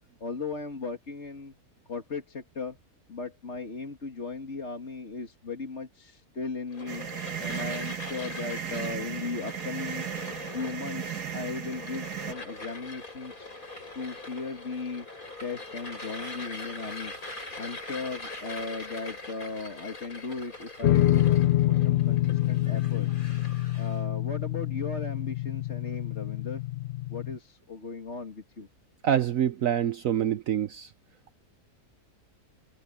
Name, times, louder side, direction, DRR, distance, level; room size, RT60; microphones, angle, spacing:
voice 1, 0.2-1.5 1.9-2.8 3.1-7.1 7.4-10.1 10.5-13.5 13.9-15.1 15.4-17.1 17.6-23.3 23.8-26.6 27.1-28.7, left 4 dB, 45° left, 2.5 m, -37 dB
sound 1, 6.7-24.0, left 2 dB, 65° left, 8.8 m, -42 dB
sound 2, 6.9-12.3, right 9 dB, 85° right, 1.8 m, -36 dB
sound 3, 20.8-27.4, left 14 dB, 80° left, 0.5 m, -26 dB
voice 2, 29.0-30.9, right 10 dB, 65° right, 1.0 m, -26 dB
omnidirectional pair, 1.6 m